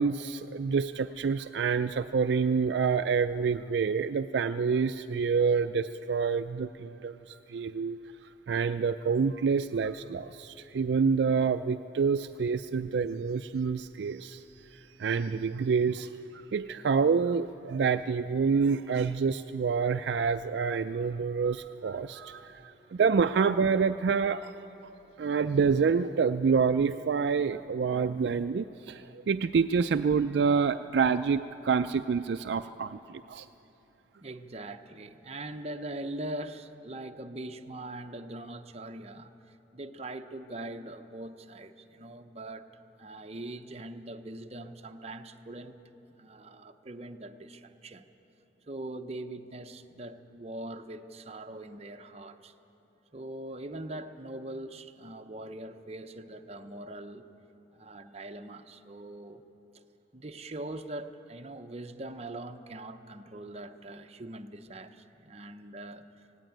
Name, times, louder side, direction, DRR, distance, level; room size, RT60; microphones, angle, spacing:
voice 1, 0.0-8.0 8.5-14.4 14.7-24.5 25.2-33.5, right 5 dB, 65° right, 10 dB, 0.4 m, -27 dB
voice 2, 34.2-42.7 43.0-45.8 46.1-48.0 48.7-52.5 53.1-57.2 57.7-59.4 60.1-66.3, right 1 dB, 35° right, 6 dB, 0.8 m, -42 dB
18.0 x 16.5 x 9.1 m, 3.0 s
head